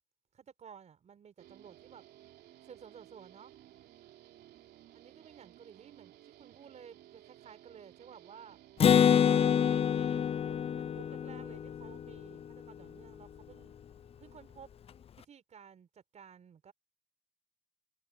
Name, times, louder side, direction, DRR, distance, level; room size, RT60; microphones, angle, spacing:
voice 1, 0.3-2.0 2.6-3.5 4.9-8.6 9.1-13.7 14.2-14.7 15.2-16.7, right 7 dB, 45° right, 4.4 m, -54 dB
Guitar, 1.4-9.1, right 13 dB, 75° right, 3.0 m, -57 dB
Acoustic guitar, 8.8-12.5, left 8 dB, 35° left, 0.5 m, -26 dB
cardioid pair, 110°, 17 cm